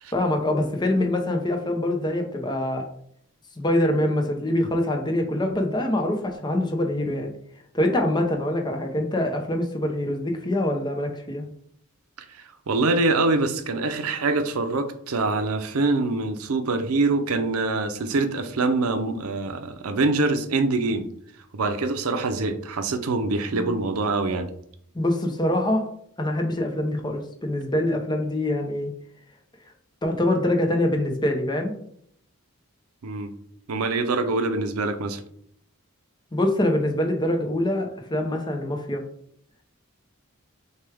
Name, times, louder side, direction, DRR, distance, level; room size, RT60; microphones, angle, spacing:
voice 1, 0.1-2.9 3.6-7.3 7.7-11.5 23.5-23.8 24.9-25.9 26.2-28.9 30.0-31.7 36.3-39.0, left 1 dB, 20° left, 3 dB, 0.7 m, -24 dB
voice 2, 12.3-21.1 21.5-24.5 33.0-33.3 33.7-35.2, right 3 dB, 90° right, 8 dB, 0.6 m, -24 dB
6.4 x 2.3 x 3.4 m, 0.66 s
head